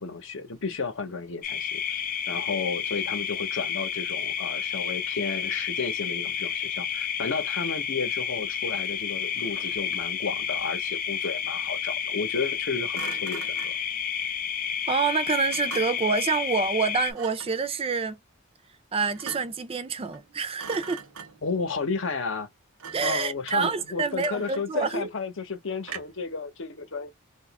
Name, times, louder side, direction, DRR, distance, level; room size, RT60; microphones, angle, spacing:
voice 1, 0.0-1.8 2.3-13.7 21.4-22.5 23.0-27.1, left 4 dB, 65° left, 0.8 m, -32 dB
sound 1, 1.4-17.1, left 8 dB, 40° left, 0.4 m, -30 dB
Thump thud, 9.4-10.2 12.9-13.8 15.5-16.2 17.1-17.6 19.0-19.7 20.0-20.3 20.6-21.6 22.8-23.2 23.5-24.8 25.8-26.3, right 6 dB, 75° right, 0.8 m, -42 dB
voice 2, 14.9-18.2 18.9-21.0 22.9-25.1, right 5 dB, 25° right, 0.4 m, -27 dB
2.9 x 2.4 x 3.4 m
head